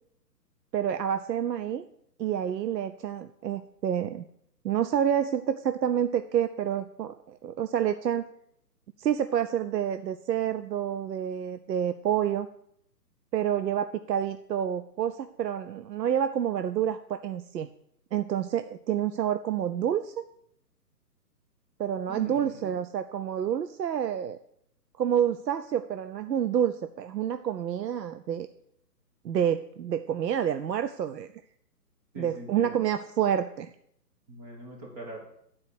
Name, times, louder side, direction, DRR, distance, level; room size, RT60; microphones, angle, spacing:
voice 1, 0.7-1.8 2.2-4.2 4.6-8.2 9.0-12.5 13.3-17.7 18.1-20.1 21.8-24.4 25.0-28.5 29.2-31.3 32.2-33.7, right 9 dB, 80° right, 10 dB, 0.5 m, -28 dB
voice 2, 22.1-22.7 32.1-32.9 34.3-35.2, right 1 dB, 25° right, -2 dB, 1.3 m, -43 dB
9.3 x 4.4 x 6.2 m, 0.72 s
figure-of-eight pair, 135°, 50 cm